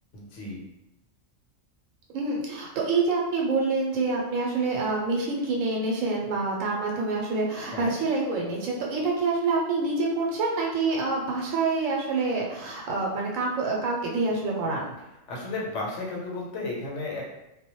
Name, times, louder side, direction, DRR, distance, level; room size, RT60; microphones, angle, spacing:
voice 1, 0.1-0.6 7.7-8.0 15.3-17.2, left 2 dB, 70° left, -3 dB, 0.9 m, -33 dB
voice 2, 2.1-14.9, right 3 dB, 90° right, -1 dB, 1.0 m, -27 dB
2.2 x 2.1 x 2.9 m, 0.91 s
omnidirectional pair, 1.3 m